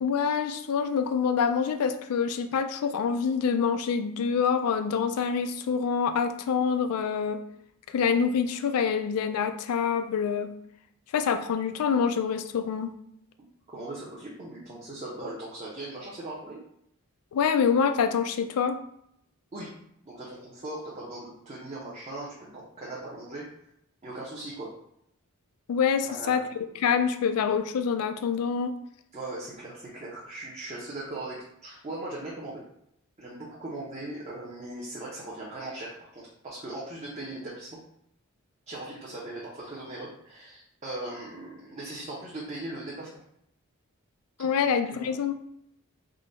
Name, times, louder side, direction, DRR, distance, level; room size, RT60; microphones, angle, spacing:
voice 1, 0.0-7.4 7.9-10.5 11.1-12.9 17.3-18.8 25.7-26.4 26.8-28.7 44.4-45.4, left 6 dB, 90° left, 9 dB, 0.4 m, -26 dB
voice 2, 13.7-16.6 19.5-19.7 20.1-23.4 24.0-24.7 26.0-26.4 29.1-32.6 33.2-37.7 38.7-43.2 44.6-45.2, right 2 dB, 30° right, -5 dB, 0.6 m, -39 dB
3.7 x 2.1 x 3.8 m, 0.75 s
head